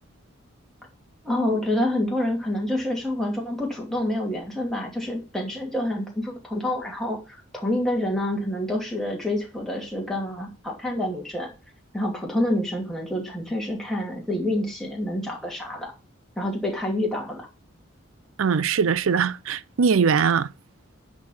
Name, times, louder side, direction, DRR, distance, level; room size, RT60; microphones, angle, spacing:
voice 1, 1.2-11.5 11.9-15.9 16.4-17.5, left 1 dB, ahead, 2.5 m, -27 dB
voice 2, 18.4-20.5, right 6 dB, 80° right, 0.5 m, -21 dB
10.5 x 4.8 x 5.5 m
head